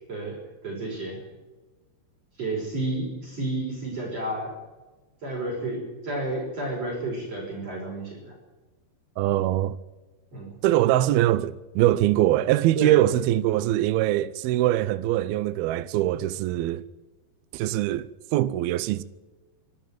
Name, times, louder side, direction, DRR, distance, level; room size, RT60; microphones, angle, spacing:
voice 1, 0.6-1.2 2.4-4.5 5.2-8.3 10.3-10.5 12.8-13.0, right 2 dB, 35° right, 6.5 m, -31 dB
voice 2, 9.2-9.8 10.6-16.8 17.5-19.0, right 14 dB, 80° right, 2.3 m, -23 dB
26.0 x 12.0 x 9.2 m
omnidirectional pair, 5.1 m